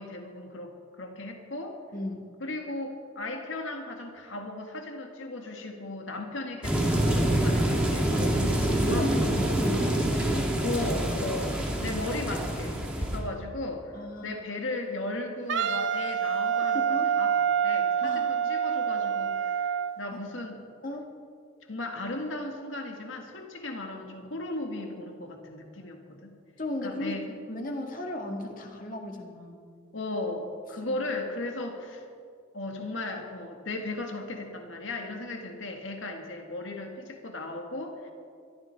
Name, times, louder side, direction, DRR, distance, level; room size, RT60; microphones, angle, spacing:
voice 1, 0.0-1.8 2.4-8.4 8.9-9.4 10.6-20.6 21.7-26.3 26.8-27.3 29.9-32.1 32.5-38.1, left 2 dB, 75° left, 3 dB, 1.8 m, -36 dB
voice 2, 1.9-2.3 8.1-10.5 10.7-10.8 11.7-11.9 13.9-14.4 16.7-17.1 18.0-18.3 20.1-20.2 20.8-21.1 26.6-29.6 30.8-31.0, left 1 dB, 45° left, 2 dB, 2.0 m, -36 dB
sound 1, 6.6-13.2, right 1 dB, 5° right, 2.3 m, -26 dB
Wind instrument woodwind instrument, 15.5-19.9, right 8 dB, 65° right, 0.8 m, -26 dB
22.0 x 13.5 x 4.6 m, 2.2 s
head